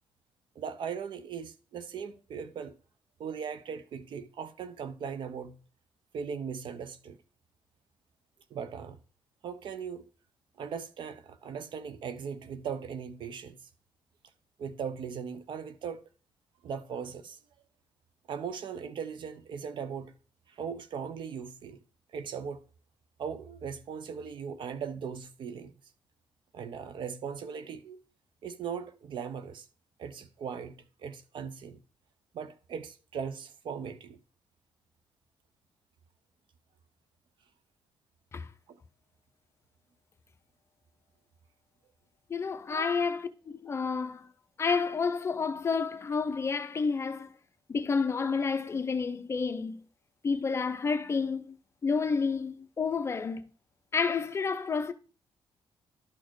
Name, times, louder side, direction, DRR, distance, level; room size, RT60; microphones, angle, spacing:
voice 1, 0.5-2.8 3.2-5.6 6.1-7.2 8.5-9.0 9.4-10.1 10.6-13.7 14.6-16.0 16.6-17.4 18.3-20.1 20.5-21.8 22.1-22.6 23.2-25.7 26.5-28.0 28.4-29.7 30.0-31.8 32.3-34.2 38.7-38.8 42.7-42.9, right 7 dB, 65° right, 0.9 m, -39 dB
voice 2, 42.3-44.3 44.6-47.3 47.7-49.8 50.2-51.6 51.8-53.5 53.9-54.9, left 5 dB, 30° left, 0.6 m, -30 dB
11.5 x 4.3 x 4.7 m
cardioid pair, 130°, 9 cm